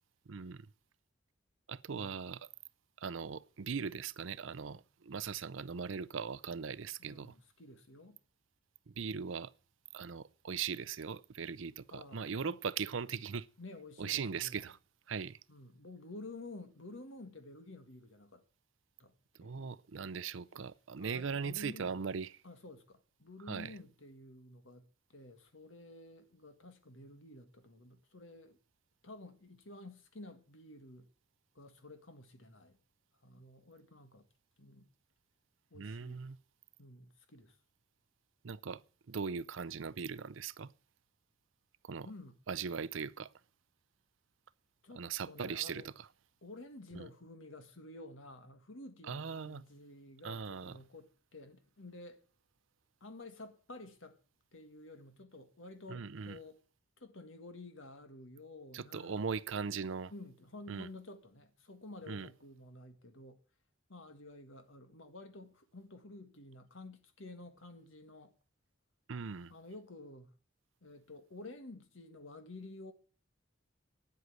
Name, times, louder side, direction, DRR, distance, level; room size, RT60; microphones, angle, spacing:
voice 1, 0.3-0.7 1.7-2.5 3.0-7.3 8.9-9.5 9.9-13.5 14.0-14.8 15.1-15.4 19.4-22.3 23.5-23.7 35.7-36.4 38.4-38.8 39.1-40.7 41.8-42.1 42.5-43.3 44.9-45.9 46.9-47.1 49.1-49.6 50.2-50.7 55.9-56.4 58.7-60.1 60.7-60.9 62.1-62.3 69.1-69.5, right 6 dB, 70° right, 0.5 m, -39 dB
voice 2, 7.0-8.2 11.9-12.6 13.6-14.6 15.5-18.4 19.0-19.1 19.4-19.6 21.0-22.0 22.4-28.6 29.0-31.1 31.6-32.8 33.2-34.3 34.6-34.9 35.7-36.3 36.8-37.6 42.0-42.4 44.8-45.9 46.4-52.2 53.0-54.2 54.5-56.6 57.0-59.3 60.1-63.4 63.9-68.3 69.5-70.3 70.8-72.9, left 2 dB, 75° left, 1.7 m, -51 dB
9.5 x 8.1 x 8.9 m
head